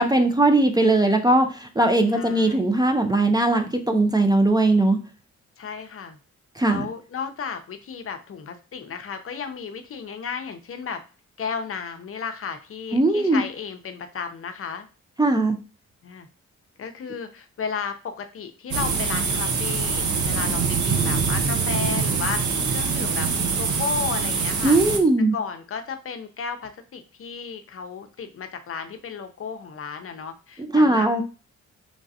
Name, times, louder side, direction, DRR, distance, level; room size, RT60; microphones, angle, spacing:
voice 1, 0.0-5.0 6.6-6.9 12.9-13.4 15.2-15.6 24.6-25.3 30.7-31.2, right 2 dB, 15° right, 5 dB, 0.4 m, -19 dB
voice 2, 2.1-2.8 5.6-6.2 6.6-11.0 11.4-14.9 16.0-16.3 16.8-23.3 23.6-24.8 25.3-31.2, left 6 dB, 50° left, 7 dB, 0.6 m, -33 dB
sound 1, 18.7-25.0, right 5 dB, 80° right, 0.8 m, -24 dB
3.7 x 3.3 x 2.7 m, 0.34 s
cardioid pair, 95°, 29 cm